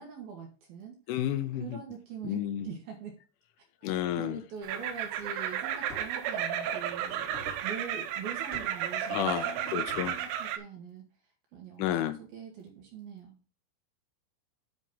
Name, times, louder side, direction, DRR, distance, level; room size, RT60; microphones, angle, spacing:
voice 1, 0.0-1.0 1.5-3.2 3.8-11.0 11.5-13.3, right 6 dB, 70° right, 2.3 m, -43 dB
voice 2, 1.1-1.8 2.2-2.7 3.8-4.4 9.1-10.2 11.8-12.2, left 11 dB, 80° left, 2.9 m, -31 dB
sound 1, 4.6-10.6, right 9 dB, 90° right, 3.4 m, -33 dB
sound 2, 5.1-5.2 5.9-6.2 6.7-7.8 8.5-8.8 9.3-10.3, right 1 dB, 40° right, 1.1 m, -47 dB
10.0 x 4.1 x 5.4 m
omnidirectional pair, 6.0 m